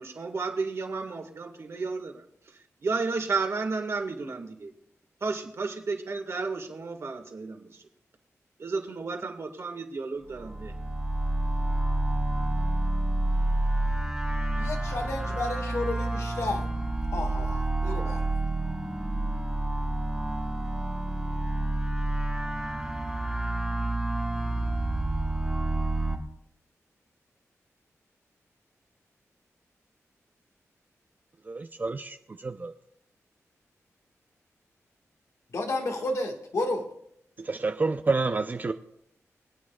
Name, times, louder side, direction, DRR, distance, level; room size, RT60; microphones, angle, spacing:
voice 1, 0.0-4.7 5.2-7.8 8.6-10.8, right 4 dB, 55° right, 3 dB, 1.8 m, -33 dB
sound 1, 10.3-26.1, right 1 dB, 10° right, 1.7 m, -29 dB
voice 2, 14.6-16.7 17.1-18.2 35.5-36.9, left 2 dB, 65° left, 2 dB, 1.7 m, -32 dB
voice 3, 31.5-32.2 32.4-32.7 37.5-38.7, right 3 dB, 35° right, 8 dB, 0.5 m, -28 dB
25.5 x 8.8 x 2.4 m, 0.72 s
wide cardioid pair, 105°, 5 cm